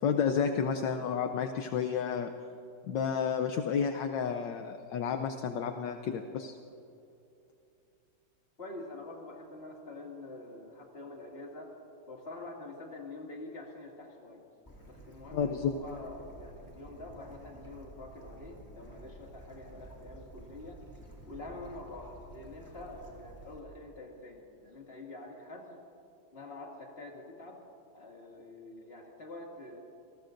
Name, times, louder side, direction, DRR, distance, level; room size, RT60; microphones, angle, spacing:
voice 1, 0.0-2.3 2.9-6.6 15.3-15.7, left 7 dB, 70° left, 6 dB, 1.3 m, -31 dB
voice 2, 8.6-11.7 12.1-14.4 14.9-20.8 21.3-25.8 26.3-27.6 27.9-29.8, left 2 dB, 30° left, -1 dB, 2.4 m, -46 dB
Bird / Stream, 14.7-23.6, right 1 dB, 10° left, 2.4 m, -51 dB
29.5 x 19.0 x 2.6 m, 2.7 s
omnidirectional pair, 2.1 m